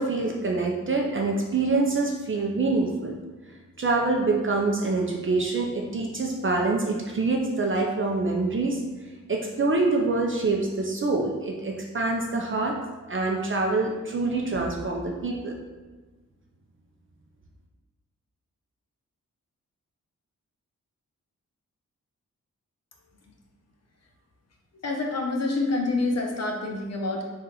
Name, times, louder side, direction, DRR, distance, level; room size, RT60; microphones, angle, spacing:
voice 1, 0.0-3.1 3.8-8.8 9.3-12.7 13.1-15.6, right 3 dB, 40° right, 0 dB, 0.5 m, -25 dB
voice 2, 24.7-27.2, left 2 dB, 55° left, 1 dB, 0.8 m, -27 dB
3.9 x 2.5 x 4.2 m, 1.3 s
cardioid pair, 75°, 32 cm